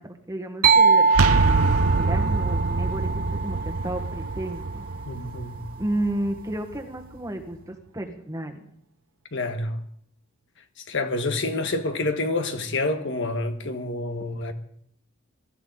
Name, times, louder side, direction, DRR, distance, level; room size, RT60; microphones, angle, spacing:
voice 1, 0.0-4.8 5.8-8.7, right 1 dB, 15° right, 1.5 m, -32 dB
sound 1, 0.6-4.3, right 4 dB, 40° right, 0.7 m, -22 dB
sound 2, 1.1-6.8, right 3 dB, 85° right, 0.8 m, -25 dB
voice 2, 5.1-5.6 9.3-9.8 10.9-14.5, left 2 dB, 55° left, 1.5 m, -28 dB
22.5 x 13.5 x 4.0 m
head